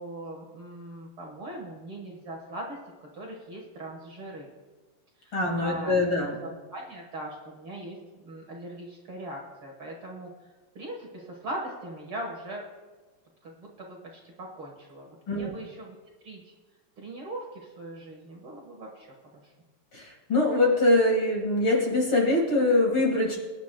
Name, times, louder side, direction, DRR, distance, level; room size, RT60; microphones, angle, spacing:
voice 1, 0.0-2.8 3.1-4.5 5.2-5.3 5.6-6.0 6.4-10.3 10.8-12.6 13.4-16.0 16.2-16.5 17.0-19.1 19.4-19.5, right 1 dB, 50° right, -1 dB, 1.9 m, -40 dB
voice 2, 5.3-6.4 15.3-15.5 19.9-23.4, left 2 dB, 45° left, -1 dB, 2.4 m, -23 dB
23.0 x 10.5 x 2.3 m, 1.3 s
omnidirectional pair, 3.6 m